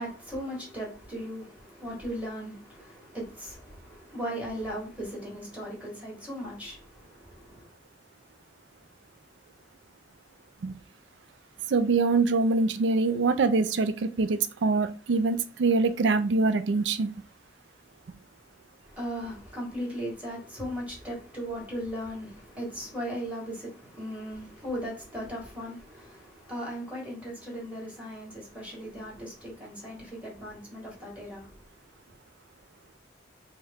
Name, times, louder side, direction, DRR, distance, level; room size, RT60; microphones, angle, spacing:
voice 1, 0.0-7.7 18.8-31.6, equal, 10° right, 1.6 m, -37 dB
voice 2, 11.7-17.1, right 3 dB, 85° right, 0.4 m, -24 dB
4.4 x 2.3 x 3.6 m
head